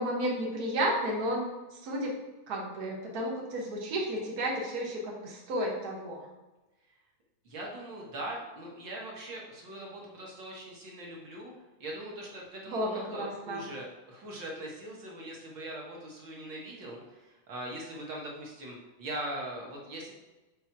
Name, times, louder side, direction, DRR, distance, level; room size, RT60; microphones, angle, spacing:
voice 1, 0.0-2.1 2.5-6.3 12.7-13.6, equal, 75° right, -2 dB, 0.8 m, -32 dB
voice 2, 7.4-11.5 11.8-20.1, right 1 dB, 50° right, -2 dB, 1.5 m, -41 dB
6.1 x 4.5 x 5.9 m, 1.1 s
omnidirectional pair, 3.6 m